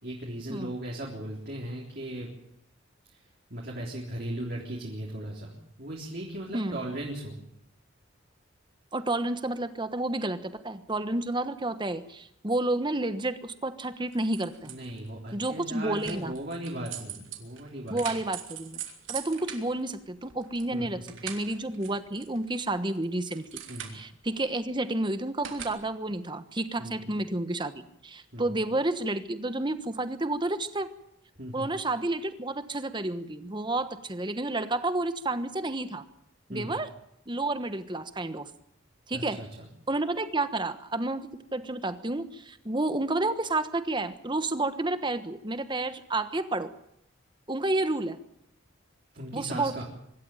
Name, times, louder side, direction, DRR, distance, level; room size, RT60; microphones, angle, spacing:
voice 1, 0.0-2.3 3.5-7.4 14.6-18.0 20.7-21.2 23.7-24.0 26.8-27.2 28.3-28.6 31.4-31.7 36.5-36.8 39.1-39.7 49.1-49.8, right 1 dB, 50° right, -3 dB, 3.7 m, -37 dB
voice 2, 8.9-14.7 15.3-16.3 17.9-18.8 19.1-23.4 23.9-30.9 31.5-36.0 36.5-36.9 37.3-38.5 39.1-39.5 39.9-46.7 47.5-48.2 49.3-49.8, right 2 dB, 25° right, 11 dB, 1.2 m, -30 dB
sound 1, 14.0-15.1 16.0-20.7 21.0-22.5 22.9-24.3 25.4-25.7, right 9 dB, 70° right, 3.2 m, -41 dB
25.0 x 13.5 x 9.1 m, 0.76 s
head